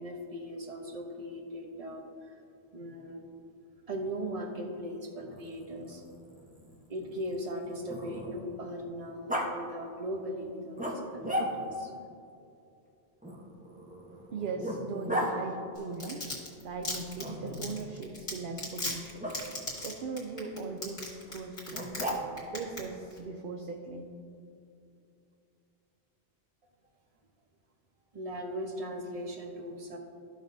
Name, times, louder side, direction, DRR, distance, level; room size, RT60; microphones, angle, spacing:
voice 1, 0.0-2.4 2.7-3.2 3.9-6.0 6.9-9.3 9.5-11.9 28.1-30.0, equal, 35° right, 2 dB, 0.9 m, -39 dB
Growling, 5.2-8.6 9.3-9.5 10.8-11.9 13.2-15.3 17.2-17.9 19.2-19.4 21.7-22.5, equal, 10° right, 0.8 m, -36 dB
voice 2, 14.3-16.3 16.6-19.3 19.8-22.0 22.5-24.2, right 4 dB, 60° right, 4 dB, 0.7 m, -39 dB
Domestic sounds home sounds, 15.8-22.1 22.4-22.8 23.1-23.2, left 2 dB, 55° left, 2.1 m, -36 dB
13.5 x 5.9 x 2.7 m, 2.6 s
omnidirectional pair, 1.1 m